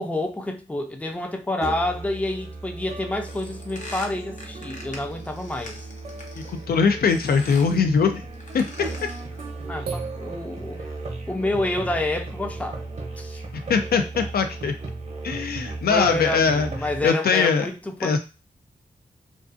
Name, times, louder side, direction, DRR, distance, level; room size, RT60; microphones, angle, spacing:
voice 1, 0.0-5.8 9.7-10.9 11.3-12.8 13.2-13.4 15.9-18.2, left 1 dB, 10° left, 0.4 m, -28 dB
Musical instrument, 1.6-17.1, right 3 dB, 45° right, 0.7 m, -36 dB
sound 1, 3.2-6.7 7.1-7.8 8.3-9.3, left 1 dB, 50° left, 0.7 m, -42 dB
voice 2, 6.4-8.2 8.5-8.6 13.5-14.7 15.2-16.7 17.0-17.7 18.0-18.2, left 5 dB, 75° left, 0.4 m, -21 dB
sound 2, 8.2-8.4 9.6-11.3, right 6 dB, 80° right, 0.4 m, -39 dB
2.4 x 2.4 x 2.4 m
cardioid pair, 60°, 16 cm